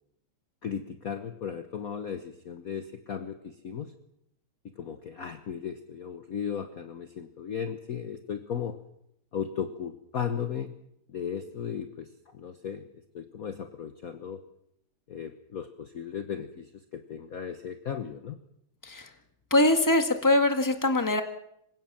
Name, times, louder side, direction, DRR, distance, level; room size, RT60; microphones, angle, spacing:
voice 1, 0.6-3.9 4.8-8.8 9.3-10.7 11.1-12.8 13.1-14.4 15.1-18.4, left 7 dB, 50° left, 7 dB, 1.3 m, -36 dB
voice 2, 19.5-21.2, left 2 dB, 10° left, 6 dB, 1.7 m, -23 dB
26.0 x 17.0 x 7.4 m, 0.78 s
omnidirectional pair, 2.4 m